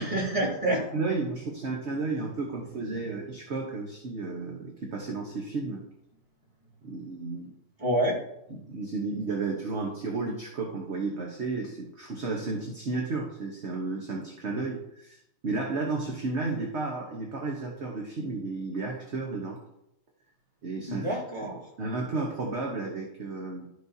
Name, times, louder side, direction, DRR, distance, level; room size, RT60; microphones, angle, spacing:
voice 1, 0.0-0.9 7.8-8.2 20.9-21.6, right 1 dB, 20° right, -3 dB, 2.1 m, -27 dB
voice 2, 0.9-5.8 6.8-7.5 8.5-19.6 20.6-21.5 21.8-23.7, right 3 dB, 45° right, 0 dB, 1.2 m, -33 dB
12.0 x 6.4 x 2.7 m, 0.80 s
omnidirectional pair, 1.9 m